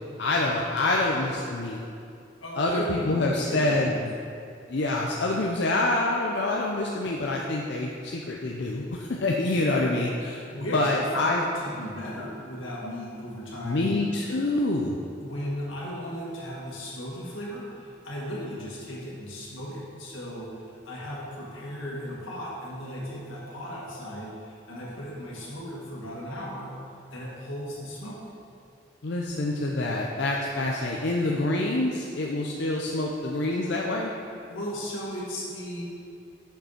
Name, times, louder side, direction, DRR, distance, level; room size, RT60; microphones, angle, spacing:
voice 1, 0.2-1.8 2.6-4.1 4.7-10.4 10.7-11.4 13.6-15.0 29.0-34.1, left 2 dB, 60° left, -1 dB, 0.6 m, -26 dB
voice 2, 2.4-4.0 10.5-13.9 15.2-26.8 27.1-28.2 30.6-30.7 34.5-35.8, equal, 85° left, -5 dB, 2.0 m, -36 dB
6.9 x 5.5 x 5.7 m, 2.5 s
head